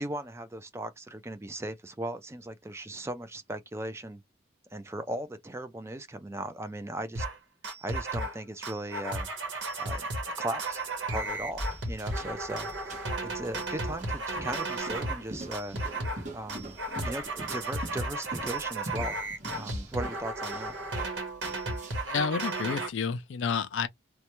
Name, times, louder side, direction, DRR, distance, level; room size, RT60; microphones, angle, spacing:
voice 1, 0.0-4.2 4.7-7.3 7.8-9.3 9.8-10.1 10.4-10.8 11.1-13.0 13.2-15.8 16.3-19.2 19.5-20.8, right 1 dB, 15° right, 0.4 m, -37 dB
sound 1, 7.2-7.4 7.6-8.4 8.6-15.2 15.5-16.2 16.5-22.9, right 2 dB, 75° right, 1.2 m, -34 dB
sound 2, 11.3-22.2, right 1 dB, 40° right, 1.2 m, -43 dB
voice 2, 22.1-23.9, left 6 dB, 75° left, 0.4 m, -30 dB
3.1 x 2.2 x 2.9 m
head